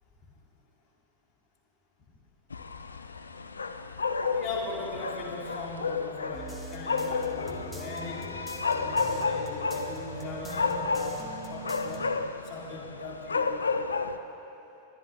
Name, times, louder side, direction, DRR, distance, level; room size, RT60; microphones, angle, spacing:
sound 1, 2.5-14.2, left 4 dB, 75° left, 0.4 m, -32 dB
voice 1, 4.3-8.3 8.6-12.1 12.4-13.7, left 3 dB, 30° left, -3 dB, 2.4 m, -40 dB
sound 2, 6.3-12.1, right 1 dB, 5° left, 1.3 m, -42 dB
21.5 x 10.0 x 3.3 m, 2.8 s
figure-of-eight pair, 90°, 0 cm